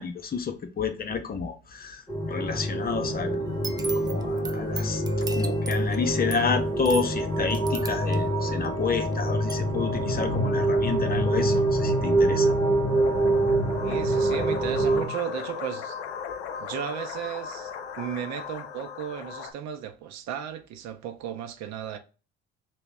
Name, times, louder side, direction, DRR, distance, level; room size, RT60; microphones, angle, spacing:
voice 1, 0.0-3.5 3.9-5.0 5.3-12.6, left 5 dB, 30° left, 0.6 m, -30 dB
sound 1, 2.1-15.1, right 1 dB, 10° left, 0.9 m, -25 dB
sound 2, 3.5-9.1 9.5-9.6, right 3 dB, 15° right, 0.3 m, -39 dB
sound 3, 12.9-19.5, left 7 dB, 85° left, 0.5 m, -37 dB
voice 2, 13.8-16.0 16.6-22.0, right 10 dB, 60° right, 0.6 m, -35 dB
2.9 x 2.0 x 3.4 m
hypercardioid pair, 55°, 32 cm